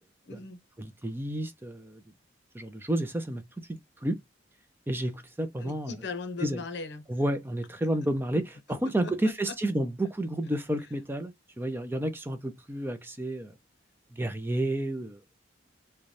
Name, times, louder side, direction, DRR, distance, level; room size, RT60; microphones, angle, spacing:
voice 1, 0.2-0.6 5.6-7.1 8.8-9.5, left 4 dB, 65° left, 0.8 m, -38 dB
voice 2, 0.8-2.0 2.5-3.4 3.7-4.2 4.9-5.9 6.4-6.6 7.1-8.4 8.7-13.5 14.1-15.2, right 1 dB, 10° right, 0.4 m, -30 dB
3.9 x 2.2 x 3.1 m
head